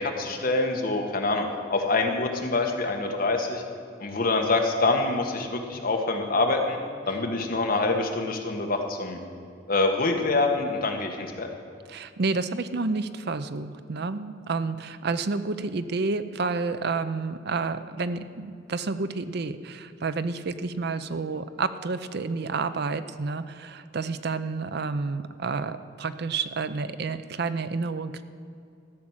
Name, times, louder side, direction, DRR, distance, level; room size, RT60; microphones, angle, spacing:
voice 1, 0.0-1.4 1.7-3.6 4.0-6.8 7.1-9.2 9.7-11.5, left 3 dB, 50° left, 3 dB, 1.4 m, -25 dB
voice 2, 11.9-28.2, right 4 dB, 60° right, 12 dB, 0.6 m, -30 dB
14.0 x 6.1 x 8.7 m, 2.5 s
head